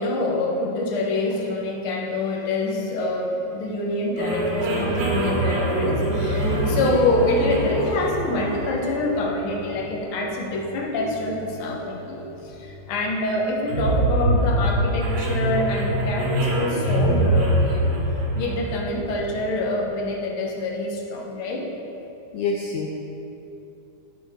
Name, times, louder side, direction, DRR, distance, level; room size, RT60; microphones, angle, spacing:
voice 1, 0.0-17.9 18.3-21.7, left 2 dB, 60° left, -1 dB, 1.5 m, -26 dB
sound 1, 4.2-19.6, right 1 dB, 70° right, 2.6 m, -25 dB
voice 2, 22.3-22.9, left 4 dB, 80° left, 1 dB, 1.7 m, -27 dB
9.2 x 8.6 x 3.6 m, 2.9 s
omnidirectional pair, 3.6 m